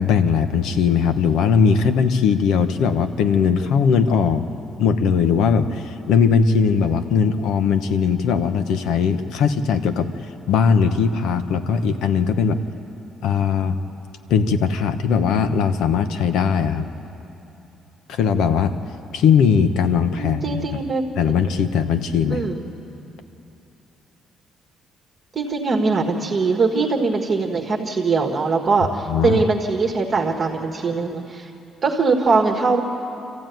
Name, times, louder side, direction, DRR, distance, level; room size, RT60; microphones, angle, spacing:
voice 1, 0.0-4.4 4.8-10.1 10.5-12.6 13.2-13.8 14.3-16.9 18.1-18.7 19.1-20.8 21.2-22.5 29.1-29.4, left 6 dB, 85° left, 9 dB, 1.1 m, -19 dB
voice 2, 20.2-21.0 22.3-22.6 25.3-31.5 31.8-32.8, right 4 dB, 25° right, 1 dB, 1.6 m, -21 dB
26.5 x 15.0 x 9.3 m, 2.9 s
cardioid pair, 175°, 0 cm